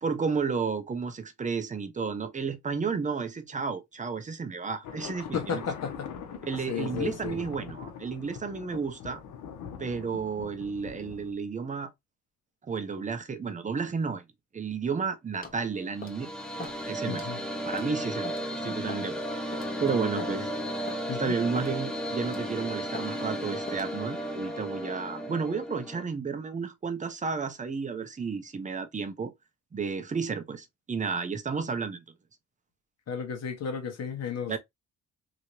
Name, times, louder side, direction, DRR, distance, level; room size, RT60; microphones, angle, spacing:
voice 1, 0.0-5.6 6.4-9.2 9.8-11.9 12.7-14.2 14.5-16.3 16.6-17.3 17.7-19.2 19.8-20.5 21.2-29.3 29.7-32.0 34.5-34.6, right 5 dB, 25° right, 0.7 m, -32 dB
sound 1, 4.8-11.3, left 7 dB, 85° left, 0.9 m, -42 dB
voice 2, 5.3-6.1 6.7-7.4 17.1-17.4 19.9-20.1 20.4-20.5 21.1-21.4 33.1-34.6, left 7 dB, 60° left, 1.2 m, -34 dB
sound 2, 15.4-15.6 16.0-16.2 16.6-16.8 17.1-17.3 17.7-18.0 18.2-18.4 18.9-19.1 19.5-19.7 20.2-20.4 20.9-21.0 21.6-21.7 22.2-22.5 22.9-23.1 23.7-23.9, left 4 dB, 30° left, 1.2 m, -41 dB
sound 3, 15.8-26.0, equal, ahead, 0.9 m, -34 dB
3.1 x 2.9 x 2.7 m
cardioid pair, 90°, 30 cm